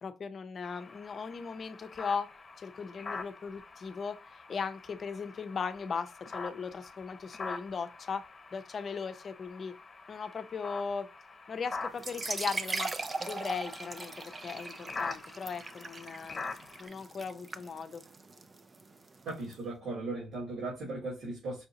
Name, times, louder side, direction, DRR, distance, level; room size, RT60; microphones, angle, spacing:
voice 1, 0.0-2.3 2.6-8.2 8.5-9.7 10.1-11.1 11.5-12.9 13.2-16.4 16.8-18.0, left 5 dB, 45° left, 0.6 m, -38 dB
sound 1, 0.6-16.9, left 4 dB, 30° left, 1.1 m, -45 dB
sound 2, 11.9-19.5, right 3 dB, 30° right, 0.5 m, -40 dB
voice 2, 19.3-21.6, right 2 dB, 70° right, 2.2 m, -37 dB
5.6 x 2.6 x 2.9 m
cardioid pair, 90°, 0 cm